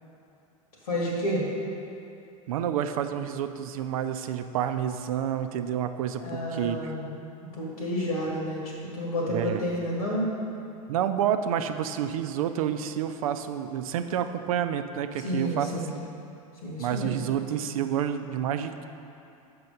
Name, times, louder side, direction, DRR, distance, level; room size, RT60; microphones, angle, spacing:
voice 1, 0.9-1.5 6.2-7.1 7.6-10.3 15.2-15.9 16.6-17.2, equal, 80° left, -3 dB, 1.8 m, -30 dB
voice 2, 2.5-7.0 9.3-9.6 10.9-15.7 16.8-18.8, right 9 dB, 70° right, 9 dB, 0.5 m, -29 dB
6.4 x 4.8 x 5.4 m, 2.7 s
hypercardioid pair, 85°, 18 cm